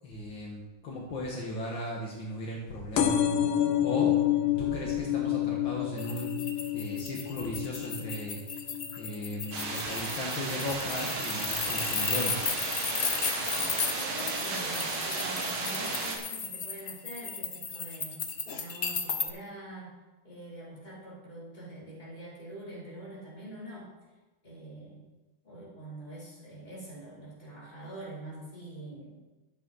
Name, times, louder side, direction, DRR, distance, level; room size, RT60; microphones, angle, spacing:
voice 1, 0.0-3.2 3.8-4.2 4.6-8.4 9.0-12.5, left 1 dB, 65° left, -3 dB, 2.4 m, -36 dB
sound 1, 3.0-10.2 10.7-11.1 12.0-12.1 12.3-12.4 12.6-12.7, left 11 dB, 90° left, 1.8 m, -29 dB
Spinning penny around large teacup, 6.0-19.3, left 5 dB, 40° left, 0.9 m, -35 dB
sound 2, 9.5-16.2, right 3 dB, 85° right, 2.6 m, -34 dB
voice 2, 13.8-18.2 18.5-19.9 20.2-23.9 24.4-25.0 25.4-29.2, right 1 dB, 20° left, -8 dB, 5.1 m, -45 dB
12.5 x 8.0 x 5.7 m, 1.1 s
omnidirectional pair, 2.3 m